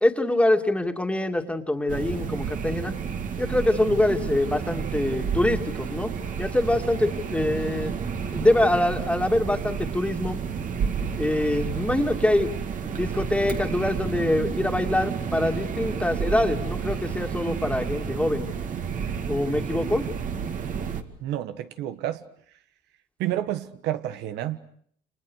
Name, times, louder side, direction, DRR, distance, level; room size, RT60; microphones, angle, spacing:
voice 1, 0.0-2.9 3.4-6.1 6.4-8.0 8.3-10.4 11.2-12.5 12.8-18.5 19.3-20.1, left 1 dB, 5° left, 5 dB, 2.5 m, -24 dB
sound 1, 1.9-21.0, right 7 dB, 50° right, 2.3 m, -31 dB
voice 2, 21.2-22.2 23.2-24.6, right 13 dB, 85° right, 10 dB, 1.5 m, -29 dB
29.5 x 27.5 x 6.4 m, 0.63 s
cardioid pair, 110°, 17 cm